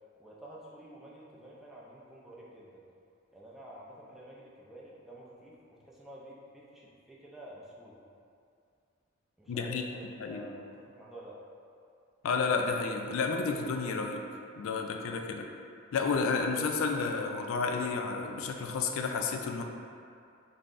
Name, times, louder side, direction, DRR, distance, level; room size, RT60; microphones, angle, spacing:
voice 1, 0.2-2.8 3.3-8.0 9.4-11.4, right 1 dB, ahead, -6 dB, 0.4 m, -50 dB
voice 2, 9.5-9.8 10.2-10.5 12.2-14.2 14.6-15.5 15.9-19.6, left 4 dB, 75° left, 3 dB, 0.3 m, -31 dB
5.4 x 2.0 x 2.5 m, 2.4 s
head